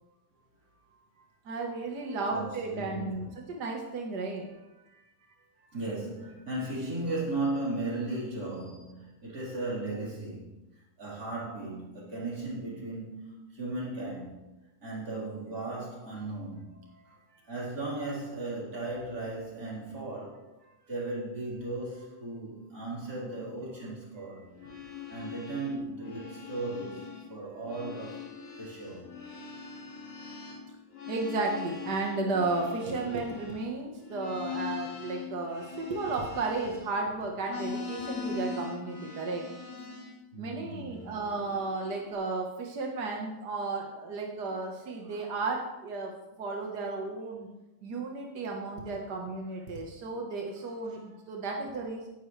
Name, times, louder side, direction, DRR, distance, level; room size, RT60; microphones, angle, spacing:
voice 1, 1.4-4.6 17.0-17.1 24.7-24.8 31.1-39.4 40.4-46.1 46.4-47.5 47.8-52.1, right 3 dB, 60° right, 1.1 m, -34 dB
voice 2, 2.3-3.3 5.7-10.6 11.0-14.4 14.8-16.8 17.5-20.5 20.9-24.5 25.1-28.3 28.6-29.1 40.3-41.1, right 2 dB, 25° right, 4.4 m, -36 dB
sound 1, 24.5-27.3 27.6-37.1 37.4-40.2 40.8-42.1, left 6 dB, 45° left, 2.6 m, -41 dB
17.0 x 11.0 x 3.3 m
omnidirectional pair, 3.9 m